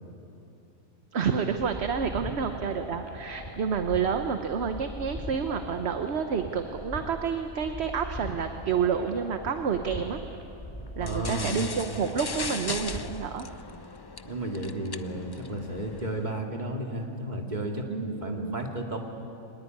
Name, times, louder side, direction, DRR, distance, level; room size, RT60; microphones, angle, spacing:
voice 1, 1.1-10.2 11.0-13.5 17.9-18.6, right 6 dB, 55° right, 7 dB, 1.2 m, -29 dB
sound 1, 1.2-13.3, equal, 15° left, 3.0 m, -40 dB
sound 2, 11.0-16.3, left 4 dB, 40° left, 0.3 m, -38 dB
voice 2, 11.0-11.7 14.2-19.0, right 1 dB, 35° right, 1 dB, 2.6 m, -33 dB
24.0 x 20.0 x 9.5 m, 2.8 s
omnidirectional pair, 1.4 m